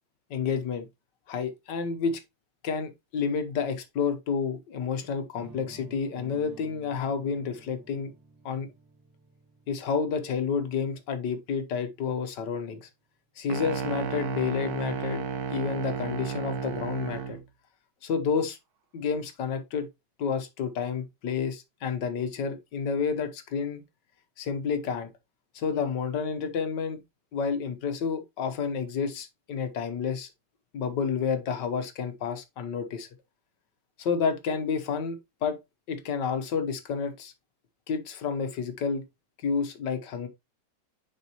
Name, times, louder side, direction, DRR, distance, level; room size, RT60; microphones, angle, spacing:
voice 1, 0.3-0.9 1.3-2.2 2.6-8.1 8.4-8.7 9.7-12.9 13.4-15.2 15.5-17.4 18.0-18.6 18.9-19.9 20.2-23.8 24.4-25.1 25.5-27.0 27.3-30.3 30.7-33.1 34.0-35.6 35.9-37.3 37.9-39.0 39.4-40.3, left 6 dB, 75° left, 1.7 m, -30 dB
sound 1, 5.4-11.3, right 3 dB, 85° right, 3.0 m, -52 dB
sound 2, 13.5-17.4, right 6 dB, 65° right, 1.2 m, -33 dB
6.6 x 5.2 x 3.0 m
omnidirectional pair, 2.0 m